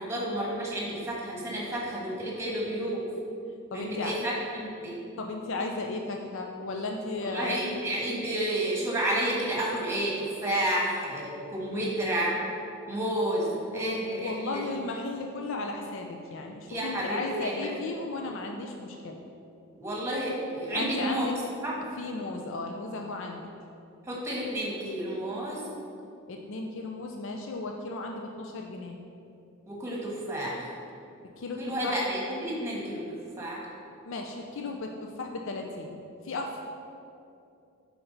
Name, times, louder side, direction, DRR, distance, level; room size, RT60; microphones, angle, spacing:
voice 1, 0.0-3.0 3.7-5.0 7.3-12.3 12.9-14.7 16.7-17.7 19.8-21.3 21.6-21.7 24.1-25.6 29.7-30.6 31.6-33.0 33.4-33.6, right 1 dB, 15° right, -4 dB, 1.3 m, -31 dB
voice 2, 3.7-4.2 5.2-7.6 13.7-19.2 20.7-21.3 22.0-23.5 26.3-29.0 31.4-31.9 34.0-36.0 36.2-36.6, left 3 dB, 60° left, 2 dB, 0.5 m, -35 dB
7.8 x 4.5 x 4.0 m, 2.6 s
head